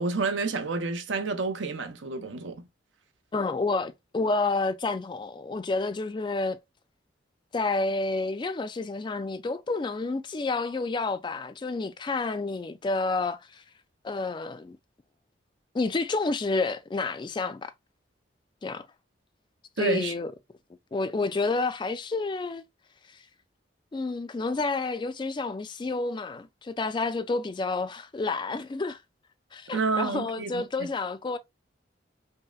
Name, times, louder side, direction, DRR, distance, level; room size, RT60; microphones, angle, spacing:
voice 1, 0.0-2.6 19.8-20.1 29.7-30.6, right 4 dB, 80° right, 0.7 m, -29 dB
voice 2, 3.3-6.6 7.5-13.6 14.0-14.8 15.7-17.7 18.6-18.9 19.8-20.3 20.9-22.6 23.9-29.0 29.5-31.4, left 3 dB, 25° left, 0.3 m, -29 dB
5.4 x 2.1 x 2.3 m
head